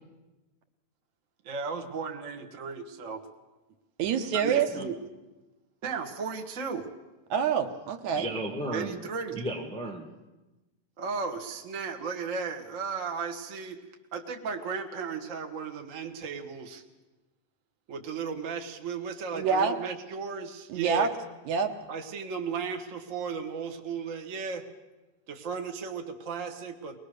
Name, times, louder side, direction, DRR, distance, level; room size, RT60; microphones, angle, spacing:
voice 1, 1.4-3.2 4.3-5.0 5.8-6.9 8.7-9.4 11.0-13.8 14.1-16.8 17.9-21.1 21.9-24.6 25.3-27.0, right 5 dB, 50° right, 4 dB, 0.9 m, -35 dB
voice 2, 4.0-4.7 7.3-8.3 19.3-19.8 20.7-21.1 21.5-21.7, right 6 dB, 65° right, 6 dB, 2.2 m, -26 dB
voice 3, 8.1-10.1, right 1 dB, 10° left, 0 dB, 0.3 m, -35 dB
22.0 x 20.0 x 6.6 m, 1.1 s
omnidirectional pair, 3.9 m